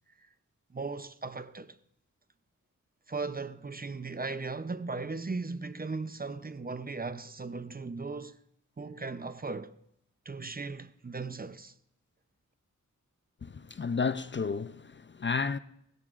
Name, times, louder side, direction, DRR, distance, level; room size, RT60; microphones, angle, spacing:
voice 1, 0.7-1.8 3.1-8.4 8.8-9.7 10.3-11.7, right 3 dB, 30° right, 0.6 m, -37 dB
voice 2, 13.4-15.6, left 5 dB, 35° left, 0.5 m, -32 dB
24.0 x 13.5 x 2.5 m
wide cardioid pair, 60°, 31 cm